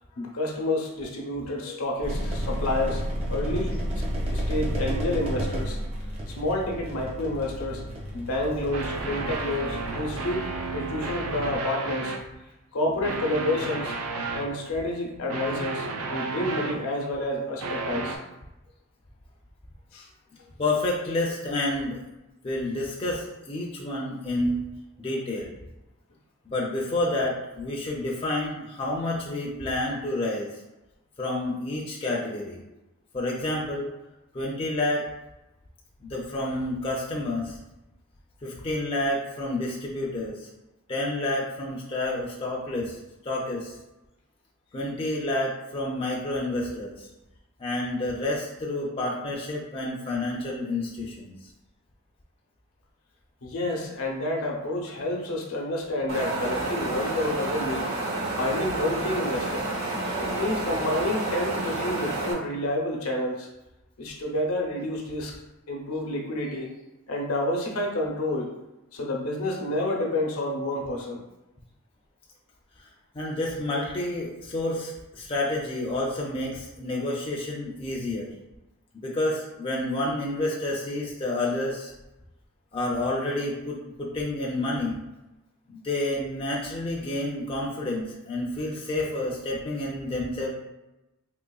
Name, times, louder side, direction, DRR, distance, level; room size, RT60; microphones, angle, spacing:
voice 1, 0.1-4.0 4.3-5.8 6.3-7.8 8.1-12.1 12.7-14.0 14.3-18.2 19.9-20.1 53.4-57.9 58.4-59.7 60.2-63.5 64.0-65.4 65.7-66.7 67.1-68.5 68.9-71.2, left 1 dB, 75° left, 0 dB, 0.7 m, -29 dB
sound 1, 2.0-11.5, equal, 25° right, 0.5 m, -32 dB
sound 2, 8.7-12.2 13.0-14.5 15.3-17.0 17.6-18.2, right 3 dB, 85° right, 0.4 m, -32 dB
voice 2, 20.6-22.0 22.4-24.6 25.0-25.5 26.5-30.5 31.2-32.6 33.1-33.9 34.3-35.1 36.0-37.6 38.4-40.5 40.9-43.0 43.2-43.8 44.7-47.1 47.6-51.3 72.8-72.9 73.1-78.3 79.0-81.9 82.7-85.0 85.7-90.5, left 1 dB, 25° left, -3 dB, 0.4 m, -29 dB
Wind, 56.1-62.3, right 2 dB, 65° right, 0.9 m, -30 dB
3.8 x 2.9 x 2.3 m, 0.97 s
head